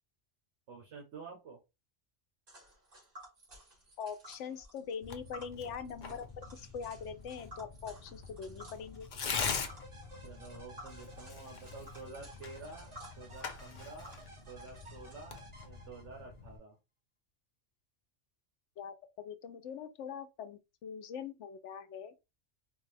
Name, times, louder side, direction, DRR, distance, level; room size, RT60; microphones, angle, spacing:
voice 1, 0.7-1.6 10.2-14.2 14.5-16.8, right 4 dB, 70° right, 1.2 m, -50 dB
Tick, 2.5-15.1, right 1 dB, 50° right, 1.9 m, -55 dB
voice 2, 4.0-9.1 18.8-22.1, left 7 dB, 80° left, 0.9 m, -43 dB
Tearing, 5.0-16.6, left 5 dB, 50° left, 0.6 m, -43 dB
sound 1, 9.5-16.4, right 2 dB, 30° right, 0.9 m, -55 dB
3.9 x 2.4 x 3.2 m
omnidirectional pair, 1.2 m